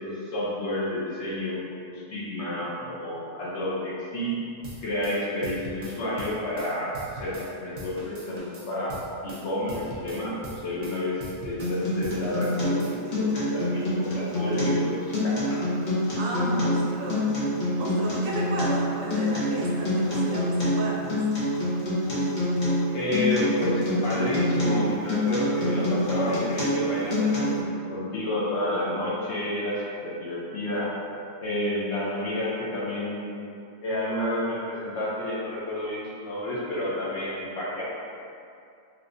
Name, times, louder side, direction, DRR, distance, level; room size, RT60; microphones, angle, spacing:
voice 1, 0.0-1.6 1.9-4.4 4.8-8.9 9.2-15.4 22.9-30.9 31.4-33.4 33.8-37.8, left 1 dB, 65° left, -7 dB, 1.0 m, -30 dB
sound 1, 4.6-7.5 7.8-11.8 12.0-12.9, right 1 dB, 55° right, 0.4 m, -41 dB
Acoustic guitar, 11.6-27.6, left 1 dB, 45° left, 0.8 m, -26 dB
voice 2, 16.2-17.3 17.7-21.2, right 1 dB, 80° right, -4 dB, 1.1 m, -33 dB
3.5 x 2.9 x 2.5 m, 2.5 s
omnidirectional pair, 1.4 m